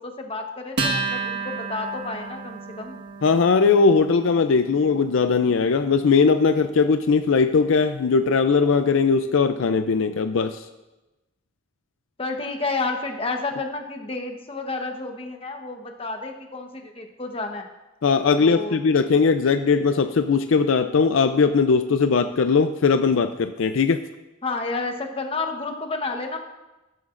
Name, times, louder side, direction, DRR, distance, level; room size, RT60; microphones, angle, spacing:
voice 1, 0.0-3.0 12.2-17.7 18.4-18.8 24.4-26.4, left 3 dB, 30° left, 4 dB, 1.1 m, -30 dB
Acoustic guitar, 0.8-7.6, right 4 dB, 55° right, 1.5 m, -33 dB
voice 2, 3.2-10.6 18.0-24.0, left 5 dB, 70° left, 9 dB, 0.5 m, -19 dB
13.5 x 12.5 x 2.5 m, 1.0 s
head